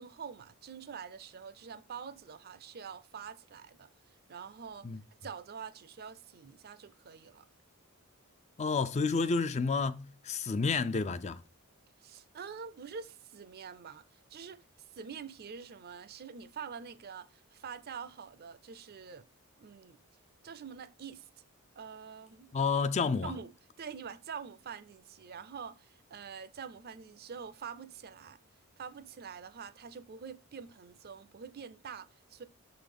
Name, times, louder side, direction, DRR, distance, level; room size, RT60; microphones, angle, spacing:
voice 1, 0.0-3.9 4.3-4.9 5.2-7.5 12.0-19.3 19.6-20.0 20.4-21.3 21.8-22.5 23.2-23.5 23.8-28.4 28.8-32.4, right 6 dB, 45° right, 0.5 m, -46 dB
voice 2, 8.6-11.4 22.5-23.3, left 4 dB, 30° left, 0.4 m, -30 dB
6.7 x 3.9 x 5.1 m
head